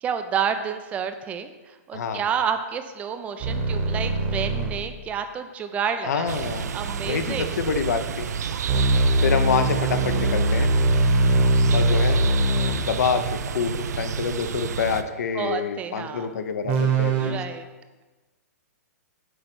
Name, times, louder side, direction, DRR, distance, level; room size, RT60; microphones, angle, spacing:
voice 1, 0.0-6.4 6.7-7.5 11.7-11.9 15.3-16.3 17.2-17.7, right 7 dB, 15° right, 9 dB, 0.3 m, -30 dB
voice 2, 1.9-2.2 6.0-6.7 7.0-8.3 9.2-10.7 11.7-12.2 12.7-17.4, left 6 dB, 75° left, 9 dB, 0.7 m, -27 dB
sound 1, 3.4-4.8 8.7-12.8 16.6-17.3, right 2 dB, 35° right, 1.0 m, -21 dB
sound 2, 6.3-15.0, right 7 dB, 85° right, 0.4 m, -30 dB
7.8 x 3.3 x 6.0 m, 1.2 s
hypercardioid pair, 150°, 9 cm